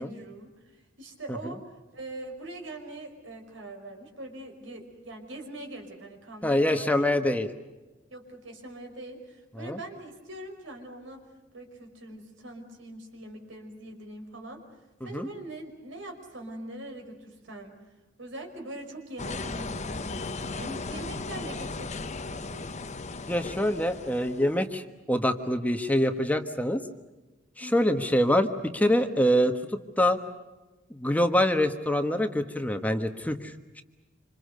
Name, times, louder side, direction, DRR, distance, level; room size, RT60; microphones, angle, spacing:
voice 1, 0.0-7.4 8.1-11.2 11.5-14.6 15.0-17.8 18.2-22.8 27.6-28.0, right 1 dB, 85° right, 3 dB, 5.5 m, -43 dB
voice 2, 6.4-7.5 9.6-9.8 15.1-15.3 23.3-24.8 25.1-26.8 27.6-28.5 28.7-29.5 30.0-30.2 30.9-33.8, left 1 dB, 10° left, 7 dB, 1.4 m, -25 dB
sound 1, 19.2-24.6, left 3 dB, 40° left, 1.0 m, -36 dB
27.5 x 27.0 x 6.7 m, 1.1 s
head